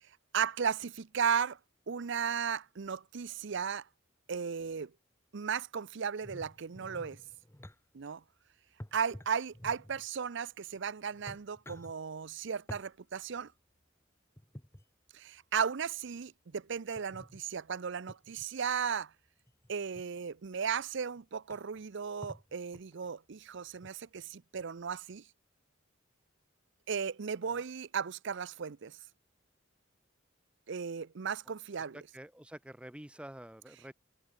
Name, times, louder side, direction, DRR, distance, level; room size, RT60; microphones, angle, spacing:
voice 1, 0.3-1.6 1.9-3.9 4.3-4.9 5.3-7.2 7.9-8.2 8.9-13.5 15.1-19.1 19.7-25.2 26.9-29.0 30.7-32.0, right 6 dB, 65° right, 0.6 m, -35 dB
sound 1, 6.2-7.8 8.8-10.1 10.8-10.9 11.1-11.9 12.7-12.9 14.4-14.8 17.0-17.4 18.1-18.5 19.5-20.0 20.8-20.9 21.2-21.3 21.5-21.8 22.2-23.1 23.8-23.9, left 1 dB, 15° left, 1.2 m, -50 dB
voice 2, 31.8-33.9, right 1 dB, 5° right, 0.8 m, -48 dB
head